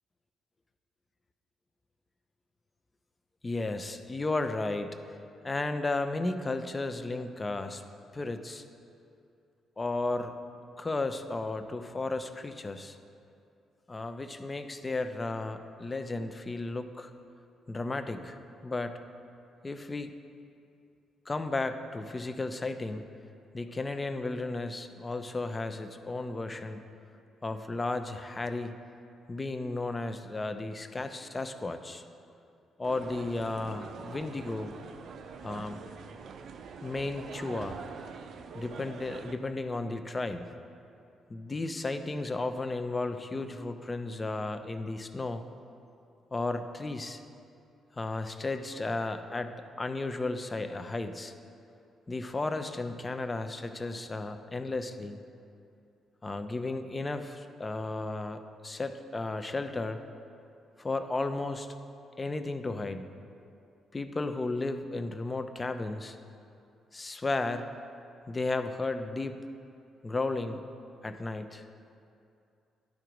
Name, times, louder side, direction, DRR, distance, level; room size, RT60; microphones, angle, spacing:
voice 1, 3.4-5.0 5.4-7.8 8.1-8.6 9.8-10.3 10.8-13.0 13.9-17.1 17.7-18.4 18.6-19.0 19.6-20.1 21.3-23.0 23.5-26.8 27.4-28.7 29.3-32.0 32.8-34.8 35.4-35.9 36.8-37.8 38.5-40.5 41.3-45.4 46.3-47.2 47.9-51.3 52.1-55.2 56.2-60.0 60.8-61.7 62.2-63.0 63.9-66.2 66.9-67.7 68.3-69.4 70.0-70.6 71.0-71.7, left 2 dB, 25° left, 9 dB, 0.5 m, -34 dB
sound 1, 32.8-39.3, right 5 dB, 60° right, 0.5 m, -44 dB
10.5 x 4.6 x 5.1 m, 2.6 s
cardioid pair, 90°, 0 cm